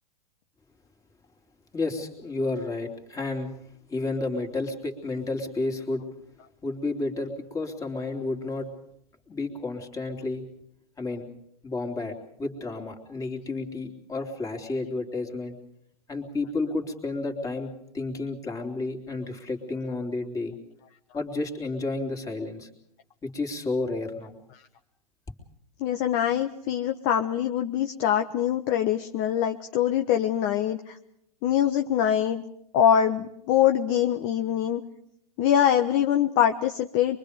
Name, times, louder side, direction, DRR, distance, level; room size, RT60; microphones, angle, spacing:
voice 1, 1.7-3.5 3.9-6.0 6.6-8.7 9.3-10.4 11.0-11.3 11.6-15.6 16.1-20.6 21.1-22.7 23.2-24.3, left 3 dB, 15° left, 4 dB, 3.3 m, -31 dB
voice 2, 25.8-31.0 31.4-32.4 32.7-34.8 35.4-37.2, left 10 dB, 40° left, 6 dB, 1.1 m, -23 dB
24.0 x 23.0 x 5.2 m, 0.73 s
hypercardioid pair, 130°, 21 cm